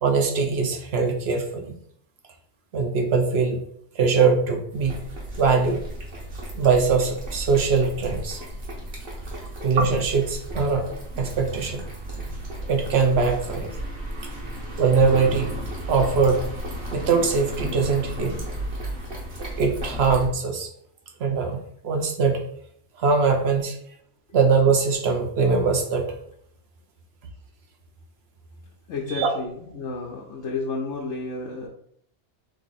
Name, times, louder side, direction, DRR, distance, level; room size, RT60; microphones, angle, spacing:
voice 1, 0.0-1.7 2.7-3.6 3.9-5.0 5.4-5.8 6.5-8.4 9.6-10.9 11.2-11.8 12.7-13.7 14.8-15.6 15.9-16.5 16.9-18.4 19.6-20.7 21.2-22.4 23.0-23.7 24.3-26.1 29.2-29.3, right 5 dB, 70° right, 4 dB, 1.0 m, -22 dB
sound 1, 4.7-20.3, right 1 dB, 55° right, 1.3 m, -34 dB
voice 2, 28.9-31.7, left 3 dB, 85° left, -1 dB, 1.0 m, -31 dB
3.6 x 3.3 x 4.0 m, 0.67 s
omnidirectional pair, 1.2 m